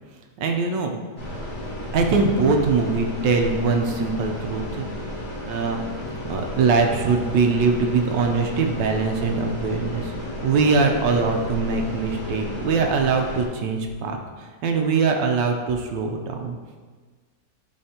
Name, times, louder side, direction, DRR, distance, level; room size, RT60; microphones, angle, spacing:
voice 1, 0.4-1.0 1.9-4.9 5.5-5.8 6.2-16.6, right 4 dB, 90° right, 3 dB, 1.4 m, -22 dB
sound 1, 1.2-13.5, left 1 dB, 35° left, 2.5 m, -33 dB
11.0 x 4.0 x 2.8 m, 1.5 s
omnidirectional pair, 1.9 m